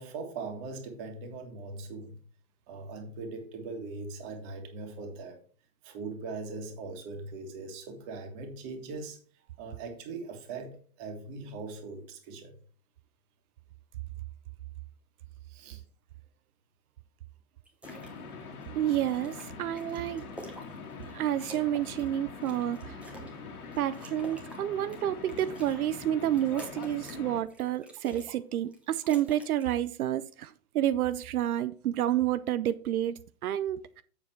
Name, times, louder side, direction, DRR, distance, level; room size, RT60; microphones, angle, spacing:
voice 1, 0.0-2.2 2.7-5.4 5.8-9.2 9.6-12.5 15.5-15.8, right 3 dB, 30° right, 1.9 m, -40 dB
sound 1, 17.6-18.1 18.5-21.1 21.4-23.3 23.7-25.8 26.2-27.2 27.5-28.4 28.6-29.8, right 1 dB, 5° right, 0.9 m, -49 dB
sound 2, 17.8-27.4, left 4 dB, 90° left, 2.3 m, -44 dB
voice 2, 18.7-20.2 21.1-23.0 23.8-34.0, right 12 dB, 90° right, 0.7 m, -30 dB
7.4 x 6.8 x 4.4 m
hypercardioid pair, 160°, 43 cm